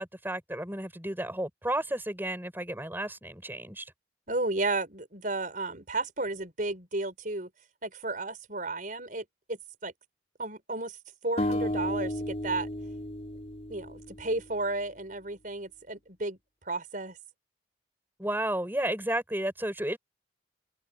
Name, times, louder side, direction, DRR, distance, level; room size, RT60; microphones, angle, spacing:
voice 1, 0.0-3.9 18.2-20.0, right 1 dB, 10° right, 7.5 m, -32 dB
voice 2, 4.3-7.5 7.8-9.9 10.4-11.0 11.2-12.7 13.7-16.4 16.7-17.2, right 2 dB, 50° right, 5.3 m, -33 dB
sound 1, 11.4-14.5, left 1 dB, 40° left, 4.5 m, -33 dB
head